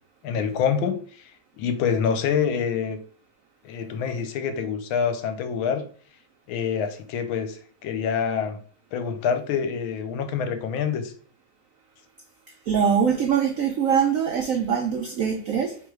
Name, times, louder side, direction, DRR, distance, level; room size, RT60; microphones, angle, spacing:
voice 1, 0.2-1.0 1.6-3.0 3.6-5.8 6.5-8.6 8.9-11.1, left 7 dB, 85° left, 1.5 m, -26 dB
voice 2, 12.7-15.8, right 7 dB, 85° right, 0.7 m, -23 dB
3.8 x 3.0 x 4.6 m
omnidirectional pair, 2.2 m